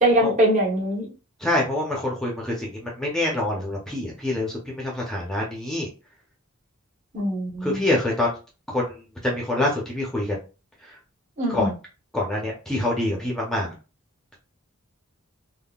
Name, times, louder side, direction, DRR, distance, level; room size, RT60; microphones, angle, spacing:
voice 1, 0.0-1.1 7.1-7.9 11.4-11.7, right 1 dB, 35° right, 1.0 m, -22 dB
voice 2, 1.4-5.9 7.6-8.3 8.7-10.4 11.5-11.7 12.1-13.7, left 1 dB, 5° left, 0.6 m, -26 dB
3.6 x 2.1 x 2.3 m
head